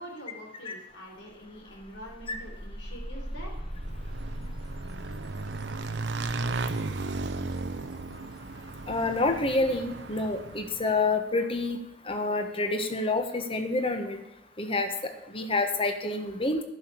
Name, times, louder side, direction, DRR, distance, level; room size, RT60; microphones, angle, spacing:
voice 1, 0.0-3.6, equal, 85° left, 0 dB, 4.0 m, -45 dB
sound 1, 0.9-1.0 1.3-8.1, equal, ahead, 1.1 m, -41 dB
Motorcycle / Engine, 3.6-11.0, right 3 dB, 75° right, 0.8 m, -35 dB
voice 2, 8.9-11.8 12.1-14.2 14.6-16.6, left 2 dB, 30° left, 7 dB, 1.3 m, -28 dB
11.0 x 6.5 x 8.5 m, 0.94 s
head